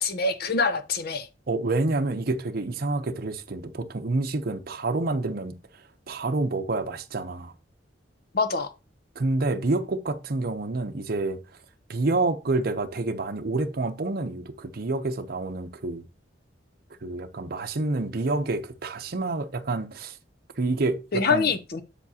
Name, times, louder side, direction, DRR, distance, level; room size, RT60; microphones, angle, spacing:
voice 1, 0.0-1.3 8.3-8.7 21.1-21.8, left 4 dB, 55° left, 0.7 m, -25 dB
voice 2, 1.5-5.6 6.1-7.5 9.2-11.4 11.9-16.0 17.0-20.2 20.6-21.5, right 2 dB, 55° right, 0.7 m, -28 dB
7.2 x 7.0 x 2.8 m
head